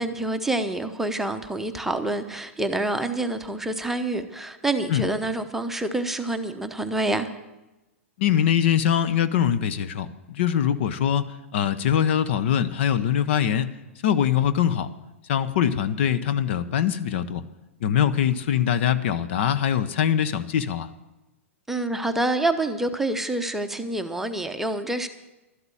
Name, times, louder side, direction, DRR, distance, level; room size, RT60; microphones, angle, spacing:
voice 1, 0.0-7.3 21.7-25.1, right 2 dB, 5° right, 6 dB, 0.9 m, -27 dB
voice 2, 8.2-13.7 14.0-14.9 15.3-17.4 17.8-20.9, left 9 dB, 55° left, 13 dB, 0.7 m, -23 dB
12.5 x 8.0 x 8.9 m, 1.0 s
hypercardioid pair, 110°, 7 cm